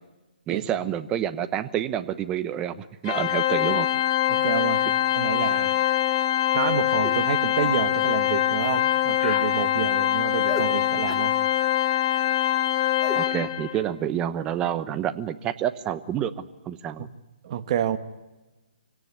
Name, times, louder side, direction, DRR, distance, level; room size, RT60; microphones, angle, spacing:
voice 1, 0.5-3.9 13.1-17.1, right 10 dB, 15° right, 11 dB, 1.0 m, -28 dB
Organ, 3.0-13.8, left 12 dB, 35° left, 1.5 m, -23 dB
voice 2, 4.3-4.8 5.1-5.8 6.5-11.4 17.4-18.0, right 10 dB, 35° right, 9 dB, 1.5 m, -29 dB
sound 1, 7.0-7.2 7.6-7.8 8.6-8.8 9.2-9.5 10.5-10.7 11.1-11.3 13.0-13.2, left 1 dB, 5° left, 2.5 m, -35 dB
25.5 x 17.5 x 9.7 m, 1.1 s
hypercardioid pair, 155°, 5 cm